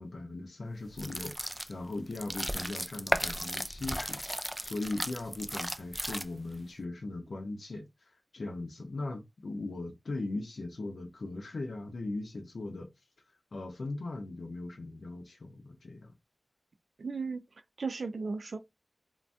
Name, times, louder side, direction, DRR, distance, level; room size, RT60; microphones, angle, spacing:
voice 1, 0.0-7.9 8.3-12.9 13.5-16.1, left 2 dB, 90° left, 0.6 m, -39 dB
Potato salad, 0.9-6.6, equal, 5° right, 0.3 m, -35 dB
voice 2, 17.0-17.4 17.8-18.6, right 4 dB, 85° right, 0.4 m, -35 dB
2.6 x 2.2 x 3.4 m
wide cardioid pair, 55°, 0 cm